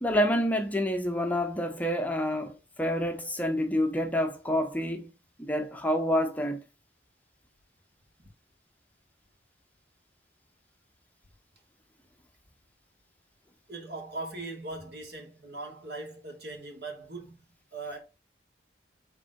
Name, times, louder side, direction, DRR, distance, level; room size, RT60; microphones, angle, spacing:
voice 1, 0.0-5.1 5.4-6.6, equal, 10° left, 0.6 m, -28 dB
voice 2, 13.7-17.4 17.7-18.0, right 2 dB, 60° right, 2.4 m, -40 dB
7.2 x 3.7 x 3.7 m
head